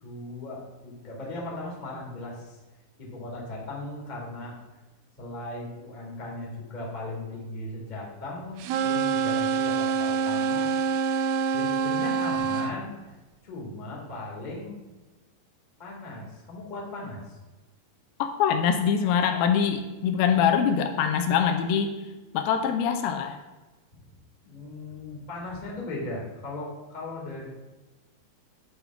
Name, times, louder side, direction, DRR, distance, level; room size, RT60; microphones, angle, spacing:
voice 1, 0.0-2.6 3.0-4.6 5.2-10.7 11.5-12.9 13.4-14.8 15.8-17.4 24.4-27.4, left 2 dB, 20° left, -4 dB, 1.2 m, -37 dB
sound 1, 8.6-12.7, right 6 dB, 80° right, 2.2 m, -26 dB
voice 2, 18.2-22.0 22.3-23.4, left 7 dB, 80° left, 6 dB, 2.4 m, -24 dB
9.6 x 3.6 x 5.8 m, 1.2 s
omnidirectional pair, 4.4 m